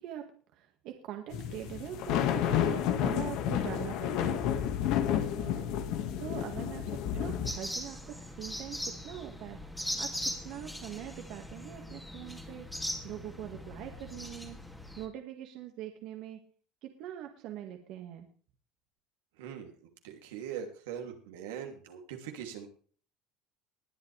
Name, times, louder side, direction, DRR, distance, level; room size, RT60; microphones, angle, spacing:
voice 1, 0.0-4.6 5.0-5.7 6.2-9.7 10.0-12.7 13.0-14.6 15.0-16.4 16.8-18.3, right 11 dB, 65° right, 4 dB, 1.9 m, -43 dB
sound 1, 1.3-7.5, left 9 dB, 65° left, 1.8 m, -30 dB
sound 2, 7.5-15.1, equal, 5° left, 2.4 m, -40 dB
voice 2, 19.4-19.7 20.0-22.7, right 8 dB, 90° right, 3 dB, 2.8 m, -41 dB
21.0 x 8.1 x 3.4 m, 0.43 s
supercardioid pair, 110°, 0 cm